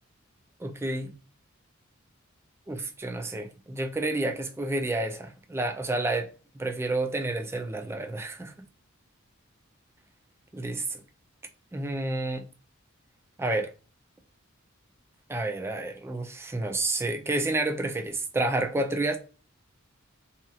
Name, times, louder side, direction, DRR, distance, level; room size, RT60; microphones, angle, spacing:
voice 1, 0.6-1.1 2.7-8.5 10.5-11.0 11.7-12.4 13.4-13.7 15.3-19.2, right 2 dB, 10° right, 0.3 m, -30 dB
2.8 x 2.3 x 2.7 m
head